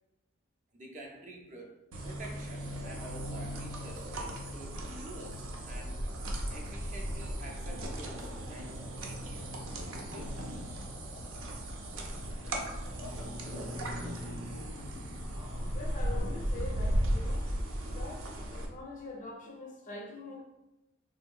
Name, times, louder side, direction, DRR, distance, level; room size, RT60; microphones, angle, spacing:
voice 1, 0.7-6.0 6.5-10.8, right 1 dB, 35° right, 1 dB, 0.4 m, -49 dB
sound 1, 1.9-18.7, equal, 90° right, 0.6 m, -36 dB
sound 2, 12.3-17.4, left 1 dB, 85° left, 0.7 m, -52 dB
voice 2, 15.7-17.6 17.9-20.4, left 2 dB, 35° left, 1 dB, 0.4 m, -44 dB
3.7 x 2.6 x 2.2 m, 0.95 s
head